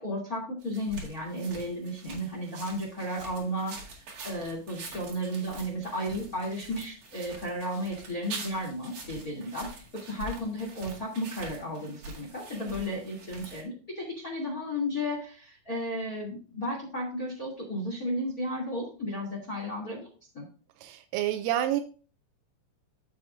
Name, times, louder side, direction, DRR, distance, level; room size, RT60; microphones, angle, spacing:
voice 1, 0.0-20.1 20.3-20.4, equal, 30° left, -1 dB, 1.8 m, -34 dB
sound 1, 0.6-13.6, right 3 dB, 55° right, 2.1 m, -45 dB
voice 2, 20.8-21.8, right 12 dB, 90° right, 6 dB, 3.3 m, -28 dB
14.0 x 5.8 x 2.5 m, 0.38 s
omnidirectional pair, 5.8 m